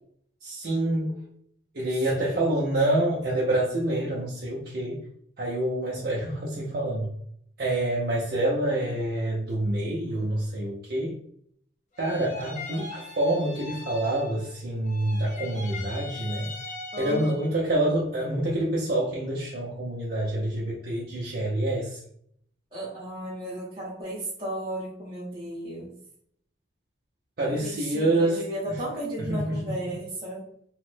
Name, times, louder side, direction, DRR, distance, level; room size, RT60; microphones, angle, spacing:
voice 1, 0.4-1.3 1.7-5.1 5.4-7.1 7.6-11.2 12.0-16.5 17.0-22.0 27.4-28.4 28.7-28.8 29.2-29.6, right 1 dB, 50° right, -5 dB, 0.5 m, -27 dB
voice 2, 1.9-2.4 16.9-17.4 22.7-25.9 27.6-30.5, right 1 dB, 25° right, -10 dB, 0.9 m, -34 dB
sound 1, 11.9-14.6 14.8-17.6, left 3 dB, 40° left, 0.5 m, -41 dB
3.0 x 2.0 x 3.2 m, 0.67 s
head